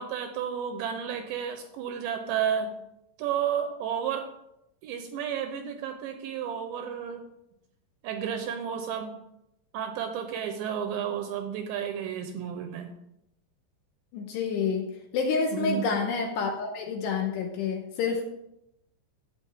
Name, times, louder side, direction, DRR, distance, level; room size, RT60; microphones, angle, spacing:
voice 1, 0.0-2.7 3.2-4.3 4.8-7.2 8.0-9.2 9.7-13.0 15.5-15.9, right 8 dB, 80° right, 6 dB, 2.7 m, -32 dB
voice 2, 14.1-18.3, left 5 dB, 75° left, 2 dB, 2.7 m, -28 dB
12.0 x 8.7 x 3.5 m, 0.83 s
omnidirectional pair, 5.7 m